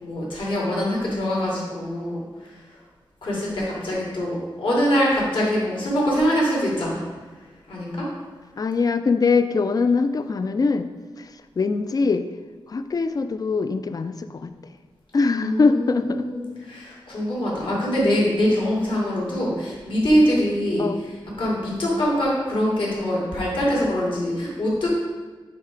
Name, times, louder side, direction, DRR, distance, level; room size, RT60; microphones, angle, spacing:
voice 1, 0.0-2.2 3.2-7.0 7.7-8.1 15.4-16.4 16.7-20.8 21.4-24.9, equal, 70° left, -6 dB, 2.2 m, -23 dB
voice 2, 8.6-10.9 11.2-11.3 11.6-12.3 12.7-14.5 15.1-16.3 20.8-21.0, left 4 dB, 45° left, 10 dB, 0.4 m, -22 dB
8.5 x 3.3 x 4.9 m, 1.4 s
wide cardioid pair, 105°, 9 cm